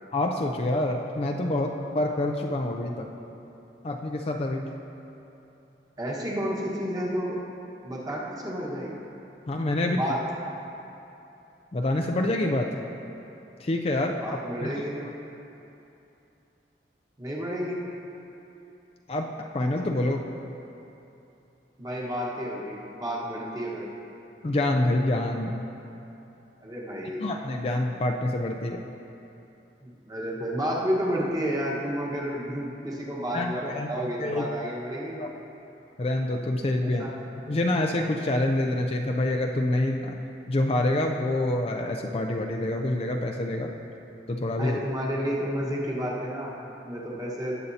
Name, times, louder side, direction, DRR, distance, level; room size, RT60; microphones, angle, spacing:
voice 1, 0.1-3.1 3.8-4.7 9.5-10.0 11.7-12.7 13.6-14.2 14.6-14.7 19.1-20.3 24.4-25.6 27.2-28.8 33.3-33.9 34.2-34.5 35.2-35.3 36.0-37.0 37.5-40.2 40.5-43.7 44.3-44.8, left 1 dB, 35° left, 2 dB, 0.4 m, -26 dB
voice 2, 6.0-7.4 7.8-9.0 9.9-10.2 14.2-15.1 17.2-17.8 21.8-23.9 26.6-27.3 29.8-35.3 36.8-37.1 44.6-47.5, equal, 20° right, -4 dB, 1.3 m, -31 dB
18.0 x 6.9 x 2.8 m, 2.9 s
head